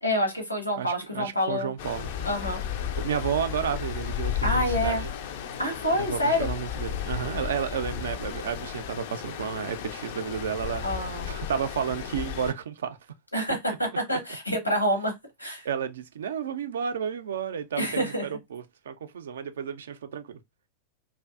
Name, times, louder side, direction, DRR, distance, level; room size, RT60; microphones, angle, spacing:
voice 1, 0.0-1.7 2.2-2.6 4.4-5.0 5.6-6.5 10.8-11.3 13.3-13.7 14.1-15.1 15.4-15.7 17.8-18.2, equal, 85° left, 0.8 m, -27 dB
voice 2, 0.8-2.1 3.0-5.1 6.0-13.0 14.1-14.2 15.6-20.4, right 7 dB, 65° right, 0.3 m, -32 dB
Stream, 1.8-12.5, left 9 dB, 50° left, 0.3 m, -34 dB
2.6 x 2.2 x 2.3 m
figure-of-eight pair, 90°, 0 cm